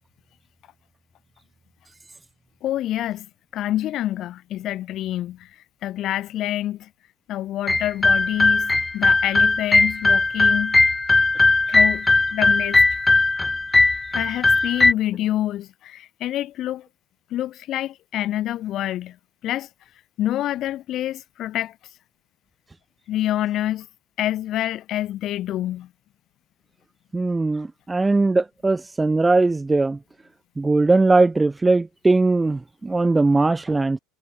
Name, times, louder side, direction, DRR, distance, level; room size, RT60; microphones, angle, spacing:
voice 1, 2.6-3.3 3.5-5.5 5.8-6.9 7.3-10.8 11.7-12.8 14.1-16.8 17.3-19.2 19.4-19.7 20.2-21.7 23.1-23.9 24.2-25.9, left 13 dB, 50° left, 4.8 m, -27 dB
sound 1, 7.7-14.9, left 3 dB, 15° left, 1.4 m, -18 dB
voice 2, 27.1-30.0 30.6-34.0, right 3 dB, 15° right, 0.4 m, -20 dB
hypercardioid pair, 85°, 0 cm